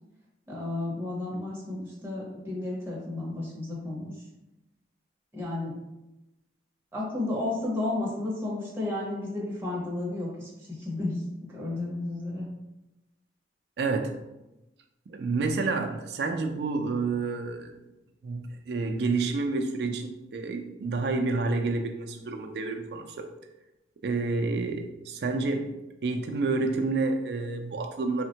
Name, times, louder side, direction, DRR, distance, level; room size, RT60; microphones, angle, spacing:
voice 1, 0.5-4.1 5.3-5.7 6.9-12.5, left 2 dB, 10° right, -5 dB, 0.6 m, -32 dB
voice 2, 13.8-14.1 15.1-17.7 18.2-23.3 24.0-28.2, right 3 dB, 60° right, 4 dB, 0.3 m, -29 dB
3.4 x 2.1 x 2.8 m, 0.95 s
head